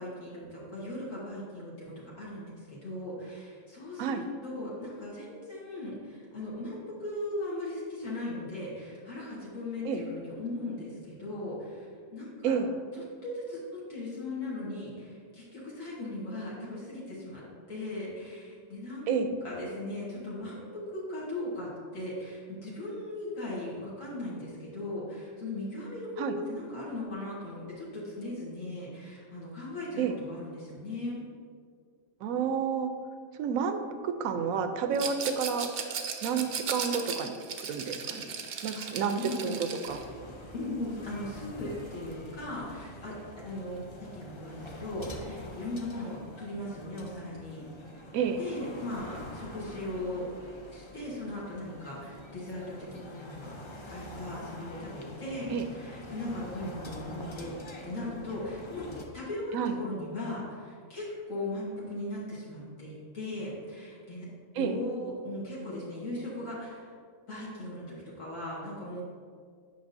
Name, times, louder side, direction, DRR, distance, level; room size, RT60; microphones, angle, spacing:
voice 1, 0.0-12.6 12.9-31.2 38.7-39.4 40.5-48.0 48.4-50.3 50.7-53.6 53.9-57.6 57.8-58.9 59.1-64.3 64.6-66.9 67.3-69.0, left 1 dB, 70° left, -7 dB, 1.8 m, -38 dB
voice 2, 32.2-32.9 33.4-33.8 34.0-35.7 36.2-37.3 37.7-38.3 38.6-40.0 48.1-48.4 55.5-55.7 59.5-59.7 64.6-64.8, right 7 dB, 80° right, 7 dB, 1.0 m, -30 dB
Rattle, 34.9-40.0, right 6 dB, 60° right, 0.7 m, -36 dB
sound 1, 39.8-59.0, left 1 dB, 40° left, 0.4 m, -46 dB
8.7 x 5.7 x 2.6 m, 2.1 s
omnidirectional pair, 1.4 m